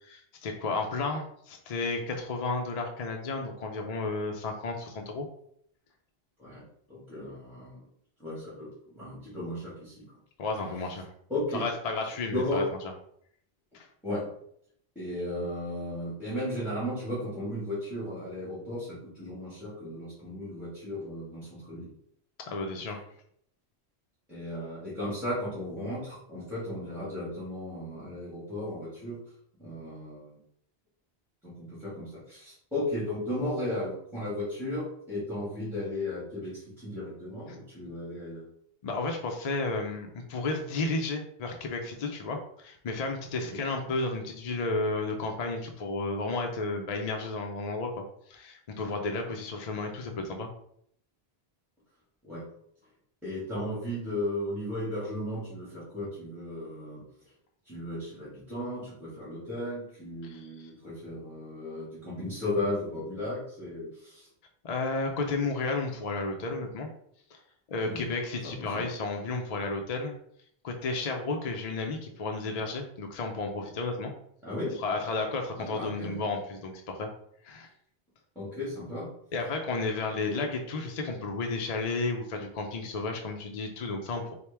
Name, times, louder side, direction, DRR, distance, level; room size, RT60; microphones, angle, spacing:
voice 1, 0.0-5.3 10.4-11.1 11.5-12.6 13.7-13.9 22.4-23.0 38.8-48.0 48.3-50.5 60.2-60.5 64.6-66.9 67.3-67.4 67.7-70.1 70.6-74.1 74.8-77.1 77.4-77.7 79.3-84.3, left 3 dB, 50° left, 2 dB, 0.5 m, -32 dB
voice 2, 6.9-7.8 8.2-8.7 8.9-10.1 11.3-11.6 12.3-12.7 14.0-14.3 14.9-21.9 24.3-29.2 29.6-30.3 31.4-38.5 43.4-43.6 52.2-52.4 53.2-57.0 57.7-64.3 67.9-68.1 68.4-68.9 74.4-74.8 75.6-76.2 78.3-79.1 80.2-80.3, left 1 dB, ahead, -9 dB, 1.4 m, -35 dB
4.3 x 2.1 x 3.3 m, 0.68 s
omnidirectional pair, 1.1 m